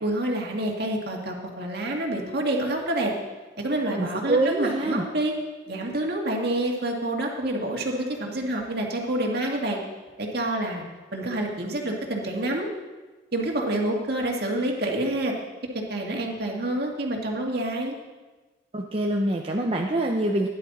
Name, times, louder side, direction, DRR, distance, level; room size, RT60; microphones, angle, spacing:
voice 1, 0.0-3.1 3.6-5.3 5.7-9.8 10.2-10.8 11.1-12.7 13.3-15.3 15.9-17.9, right 1 dB, 55° right, 0 dB, 2.1 m, -27 dB
voice 2, 4.0-5.1 18.7-20.5, right 1 dB, 30° right, 0 dB, 0.8 m, -25 dB
15.5 x 11.0 x 4.3 m, 1.2 s
head